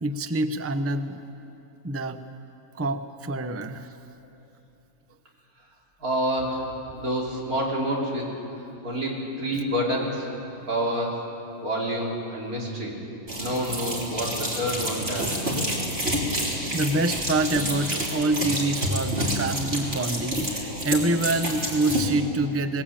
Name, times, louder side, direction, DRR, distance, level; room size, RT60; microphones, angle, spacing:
voice 1, 0.0-1.2 1.8-2.2 2.8-3.9 9.5-9.6 16.4-22.8, right 2 dB, 15° right, 9 dB, 0.5 m, -26 dB
voice 2, 6.0-6.7 6.9-8.3 8.8-10.3 10.7-11.2 11.6-12.9 13.4-15.4, equal, 85° right, -3 dB, 4.1 m, -28 dB
sound 1, 13.3-22.1, equal, 45° right, 4.1 m, -29 dB
21.5 x 20.0 x 8.8 m, 2.8 s
omnidirectional pair, 1.5 m